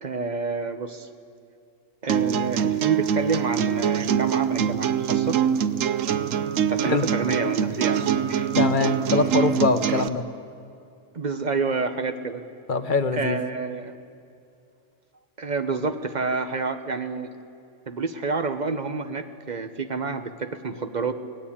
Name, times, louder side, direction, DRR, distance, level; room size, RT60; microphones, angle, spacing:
voice 1, 0.0-1.1 2.0-5.4 6.6-8.5 11.1-12.4 13.1-14.0 15.4-17.3 17.9-21.1, right 4 dB, 40° right, 8 dB, 1.1 m, -28 dB
sound 1, 2.1-10.1, right 8 dB, 90° right, 1.1 m, -24 dB
voice 2, 8.5-10.2 12.7-13.4, left 4 dB, 45° left, 9 dB, 1.1 m, -23 dB
24.5 x 18.0 x 8.7 m, 2.5 s
omnidirectional pair, 1.3 m